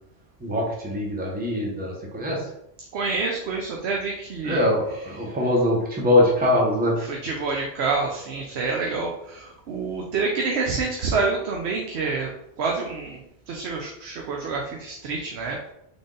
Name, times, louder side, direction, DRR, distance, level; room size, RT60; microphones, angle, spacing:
voice 1, 0.4-2.5 4.4-7.0 8.8-8.9, left 1 dB, 10° right, -2 dB, 0.8 m, -23 dB
voice 2, 2.9-4.7 7.1-12.3 12.6-15.7, right 4 dB, 75° right, 0 dB, 0.9 m, -27 dB
3.9 x 3.5 x 3.8 m, 0.81 s
omnidirectional pair, 1.1 m